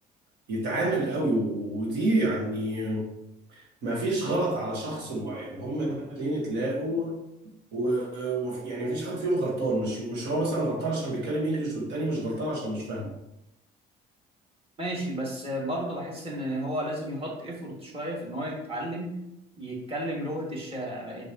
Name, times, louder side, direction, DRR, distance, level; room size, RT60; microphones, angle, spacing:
voice 1, 0.5-3.1 3.5-7.2 7.7-13.1, right 1 dB, 85° right, -2 dB, 1.7 m, -28 dB
voice 2, 14.8-19.1 19.6-21.3, equal, 35° right, -2 dB, 2.3 m, -33 dB
6.7 x 6.1 x 3.0 m, 0.84 s
cardioid pair, 110°, 17 cm